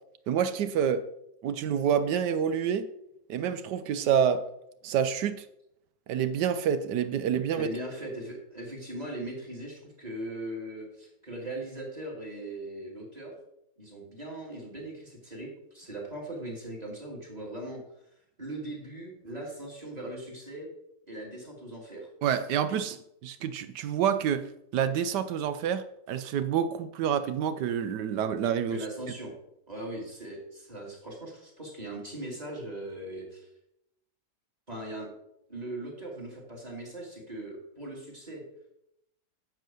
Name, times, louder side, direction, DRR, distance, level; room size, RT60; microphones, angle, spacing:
voice 1, 0.3-1.0 1.4-2.9 3.3-4.4 4.8-5.5 6.1-7.7 22.2-24.4 24.7-28.8, right 8 dB, 80° right, 1.3 m, -28 dB
voice 2, 7.5-13.3 13.8-15.5 15.7-17.8 18.4-20.7 21.1-22.1 28.7-29.3 29.7-33.5 34.7-35.1 35.5-38.4, right 1 dB, 20° right, 2.9 m, -39 dB
11.0 x 4.7 x 7.7 m
omnidirectional pair, 1.8 m